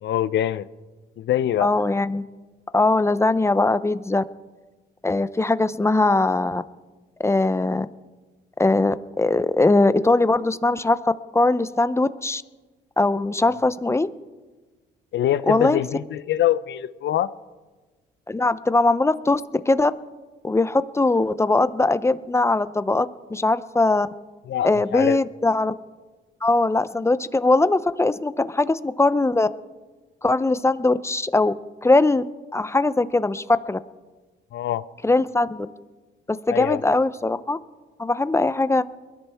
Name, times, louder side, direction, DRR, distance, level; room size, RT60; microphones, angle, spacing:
voice 1, 0.0-0.6 1.2-1.7 15.1-17.3 24.5-25.2 34.5-34.8 36.5-36.8, left 12 dB, 65° left, 16 dB, 0.6 m, -24 dB
voice 2, 1.6-2.2 2.7-4.2 5.0-6.6 7.2-7.9 8.6-11.0 11.3-12.4 13.0-14.1 15.5-15.8 18.3-19.4 19.7-19.9 20.4-24.1 24.6-25.7 26.4-29.5 30.2-31.5 31.8-32.2 32.5-33.8 35.0-35.7 36.3-37.6 38.0-38.8, left 2 dB, 15° left, 14 dB, 0.6 m, -20 dB
22.5 x 14.0 x 3.5 m, 1.3 s
cardioid pair, 90°, 20 cm